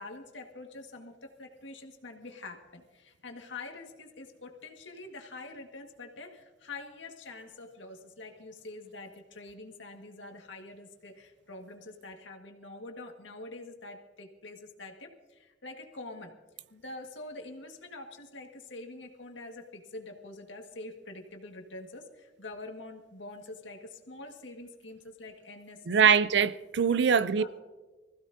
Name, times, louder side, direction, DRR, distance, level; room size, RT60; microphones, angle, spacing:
voice 1, 0.0-16.3 16.7-26.1 26.8-27.6, left 2 dB, 90° left, 1.8 m, -45 dB
voice 2, 25.9-27.4, right 6 dB, 65° right, 0.5 m, -23 dB
24.5 x 15.5 x 2.7 m
head